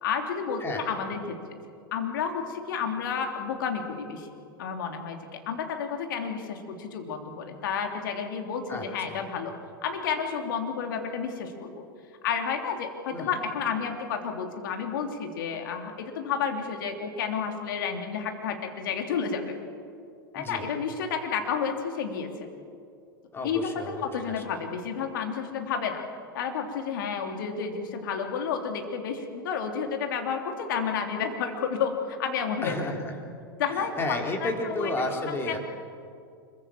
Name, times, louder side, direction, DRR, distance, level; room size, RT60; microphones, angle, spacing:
voice 1, 0.0-1.4 1.9-4.3 4.6-9.5 9.8-11.8 12.2-19.5 20.3-22.3 23.4-26.0 26.3-32.8 33.6-34.9 35.2-35.6, left 6 dB, 65° left, 4 dB, 3.2 m, -31 dB
voice 2, 8.7-9.2 13.1-13.4 20.3-20.6 23.3-24.6 32.6-33.1 33.7-35.6, left 2 dB, 20° left, 1 dB, 4.4 m, -32 dB
25.5 x 22.5 x 7.6 m, 2.4 s
figure-of-eight pair, 95°, 12 cm